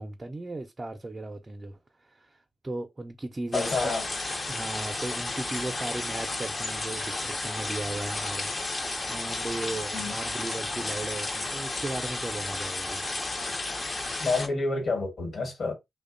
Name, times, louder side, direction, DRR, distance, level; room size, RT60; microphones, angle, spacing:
voice 1, 0.0-3.9 4.5-8.5 8.8-13.0, right 2 dB, 30° right, 0.5 m, -37 dB
voice 2, 3.5-4.0 9.9-10.1 14.2-15.7, left 3 dB, 60° left, 1.2 m, -28 dB
sound 1, 3.5-14.5, left 2 dB, 40° left, 0.6 m, -32 dB
2.7 x 2.1 x 2.5 m
cardioid pair, 55°, 0 cm